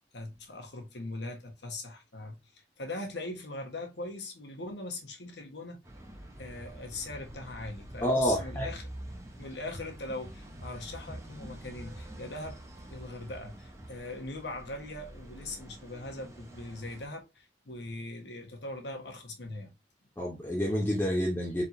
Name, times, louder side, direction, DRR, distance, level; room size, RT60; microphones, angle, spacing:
voice 1, 0.1-5.8 6.4-8.9 9.4-12.6 12.9-19.7, left 2 dB, 70° left, 1.2 m, -41 dB
sound 1, 5.8-17.1, right 1 dB, 15° right, 0.8 m, -46 dB
voice 2, 8.0-8.7 20.2-21.6, equal, 10° left, 0.8 m, -28 dB
4.3 x 3.5 x 2.6 m
head